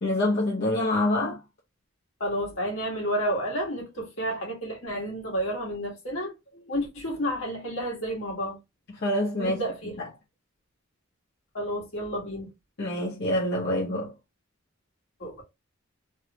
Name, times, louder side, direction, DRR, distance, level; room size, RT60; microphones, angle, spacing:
voice 1, 0.0-1.4 9.0-9.6 12.8-14.1, left 1 dB, 55° left, 0.7 m, -26 dB
voice 2, 2.2-8.6 9.4-10.0 11.5-12.5 15.2-15.4, equal, 75° left, 1.5 m, -31 dB
3.3 x 2.1 x 2.8 m
head